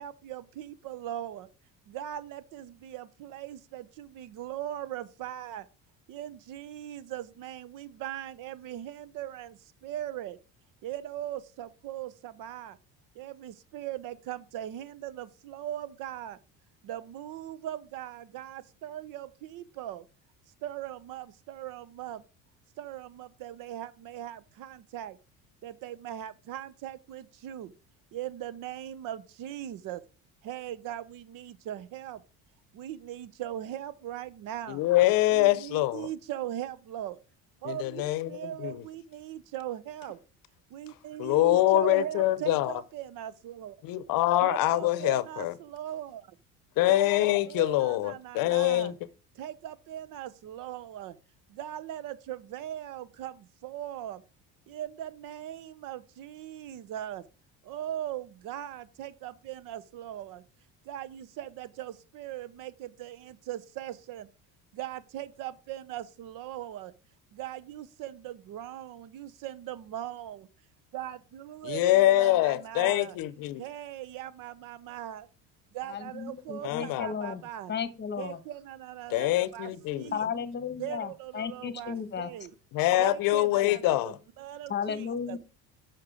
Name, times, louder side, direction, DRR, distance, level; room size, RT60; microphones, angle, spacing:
voice 1, 0.0-1.5 1.9-5.7 6.1-10.4 10.8-12.8 13.1-16.4 16.8-20.1 20.6-22.2 22.8-25.2 25.6-27.7 28.1-30.0 30.4-32.2 32.7-34.8 35.3-37.2 37.6-40.2 40.7-43.8 44.4-46.4 46.9-48.9 49.3-51.2 51.5-54.2 54.7-57.2 57.6-60.4 60.8-64.3 64.7-66.9 67.3-70.5 70.9-73.2 73.6-75.3 75.7-77.7 78.2-80.3 80.8-82.5 83.0-85.4, right 12 dB, 60° right, 0.7 m, -39 dB
voice 2, 34.7-36.1 37.6-38.3 38.6-38.8 41.2-42.7 43.8-45.5 46.8-48.9 71.6-73.6 76.6-77.1 79.1-80.1 82.7-84.1, left 15 dB, 65° left, 0.7 m, -25 dB
voice 3, 75.9-77.4 77.7-78.4 80.1-82.3 84.7-85.4, left 7 dB, 30° left, 1.0 m, -34 dB
6.6 x 6.0 x 4.9 m
cardioid pair, 110°, 36 cm